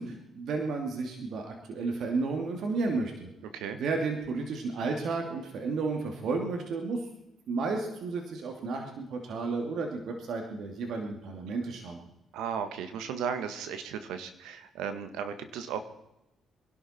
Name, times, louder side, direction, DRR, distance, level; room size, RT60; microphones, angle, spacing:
voice 1, 0.0-3.3 3.7-7.1 7.5-12.0, right 3 dB, 70° right, 3 dB, 2.6 m, -32 dB
voice 2, 12.3-15.9, right 7 dB, 85° right, 9 dB, 1.7 m, -35 dB
23.5 x 12.0 x 4.5 m, 0.90 s
supercardioid pair, 70°, 0 cm